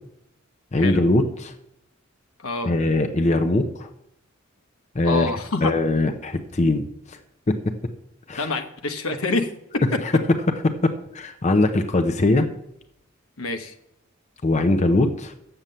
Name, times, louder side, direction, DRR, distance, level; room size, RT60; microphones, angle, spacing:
voice 1, 0.7-1.5 2.6-3.9 4.9-5.3 5.6-7.2 7.5-7.7 8.3-8.5 10.0-10.1 11.1-12.5 14.4-15.3, left 2 dB, 35° left, 7 dB, 0.6 m, -21 dB
voice 2, 2.4-2.7 5.0-5.7 8.4-10.0 13.4-13.7, left 2 dB, 80° left, 7 dB, 1.1 m, -27 dB
8.9 x 7.4 x 6.7 m, 0.81 s
head